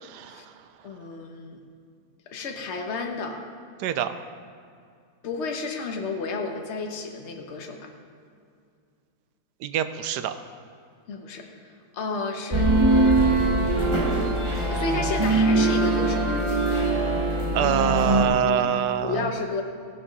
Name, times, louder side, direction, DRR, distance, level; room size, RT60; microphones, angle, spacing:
voice 1, 0.0-0.5 3.8-4.1 9.6-10.3 17.5-19.3, right 9 dB, 80° right, 11 dB, 1.2 m, -25 dB
voice 2, 0.8-1.6 2.3-3.4 5.2-7.9 11.1-11.5 11.9-12.7 13.8-14.3 14.7-16.2 19.0-19.6, left 4 dB, 45° left, 3 dB, 1.2 m, -32 dB
sound 1, 12.5-18.2, right 2 dB, 20° right, 1.2 m, -22 dB
16.0 x 7.2 x 5.3 m, 2.3 s
omnidirectional pair, 1.8 m